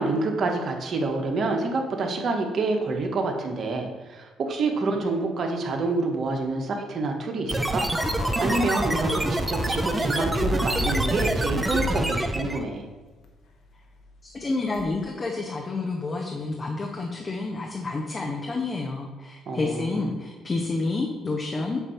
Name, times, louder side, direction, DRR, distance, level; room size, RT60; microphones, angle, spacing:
voice 1, 0.0-7.8 8.4-12.9 19.5-20.1, right 3 dB, 50° right, 3 dB, 1.1 m, -27 dB
sound 1, 7.5-12.7, right 1 dB, 15° right, 0.6 m, -26 dB
sound 2, 7.9-12.4 13.2-13.3 14.7-14.8, left 2 dB, 65° left, 1.0 m, -33 dB
voice 2, 14.2-21.8, left 3 dB, 30° left, 1 dB, 0.8 m, -29 dB
8.2 x 2.7 x 5.6 m, 1.2 s
cardioid pair, 90°, 0 cm